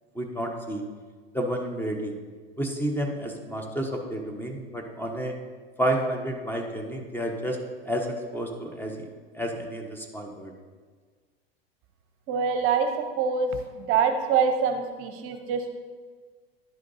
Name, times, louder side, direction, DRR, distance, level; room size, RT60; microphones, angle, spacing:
voice 1, 0.1-0.8 1.3-2.1 2.6-5.3 5.8-7.6 7.8-9.0 9.3-10.5, right 1 dB, 5° left, 2 dB, 1.0 m, -30 dB
voice 2, 12.3-12.9 13.2-15.7, right 6 dB, 45° right, 6 dB, 0.8 m, -25 dB
10.5 x 5.0 x 4.1 m, 1.5 s
hypercardioid pair, 90°, 31 cm